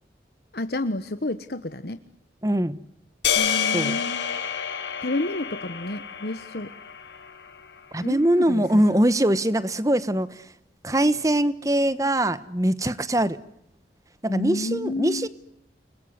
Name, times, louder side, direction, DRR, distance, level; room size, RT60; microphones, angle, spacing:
voice 1, 0.5-2.0 3.3-4.3 5.0-6.7 8.0-8.8 14.3-15.3, left 1 dB, 60° left, 10 dB, 1.2 m, -30 dB
voice 2, 2.4-2.8 3.7-3.9 7.9-10.5 10.8-13.4 14.2-15.3, right 1 dB, 20° right, 15 dB, 1.1 m, -22 dB
sound 1, 3.2-7.6, left 8 dB, 85° left, 4.7 m, -28 dB
30.0 x 21.0 x 9.6 m, 0.78 s
head